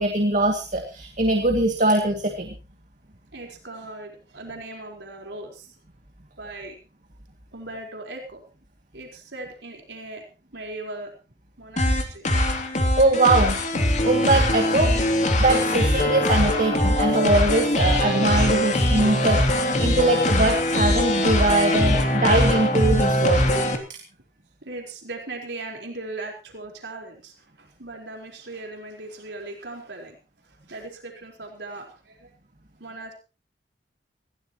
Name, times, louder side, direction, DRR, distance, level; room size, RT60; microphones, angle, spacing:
voice 1, 0.0-2.5 13.0-14.9 15.4-23.4, right 2 dB, 45° right, 3 dB, 2.4 m, -22 dB
voice 2, 3.3-5.7 6.4-6.8 7.5-8.4 8.9-10.2 10.5-11.1 11.6-12.3 19.9-20.0 24.6-30.2 30.4-32.3 32.8-33.1, right 2 dB, 80° right, 1 dB, 4.5 m, -38 dB
sound 1, 11.8-23.8, left 1 dB, 45° left, 3.0 m, -21 dB
20.5 x 17.0 x 3.1 m, 0.33 s
head